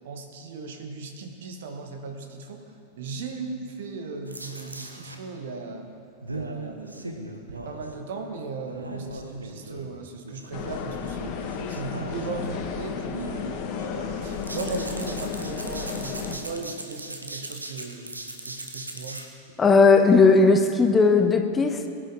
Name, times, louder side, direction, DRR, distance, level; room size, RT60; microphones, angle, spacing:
voice 1, 0.0-2.7 3.0-5.9 6.3-18.1 18.5-19.2, right 4 dB, 55° right, 5 dB, 1.5 m, -37 dB
sound 1, 4.3-5.2 6.2-7.9 8.6-9.9 10.2-10.9 11.5-12.7 13.2-13.9 14.2-19.3, right 2 dB, 80° right, 1.2 m, -39 dB
sound 2, 10.5-16.4, left 6 dB, 40° left, 1.4 m, -33 dB
voice 2, 19.6-21.9, left 4 dB, 20° left, 7 dB, 0.9 m, -17 dB
22.0 x 10.0 x 4.0 m, 2.5 s
figure-of-eight pair, 90°, 0 cm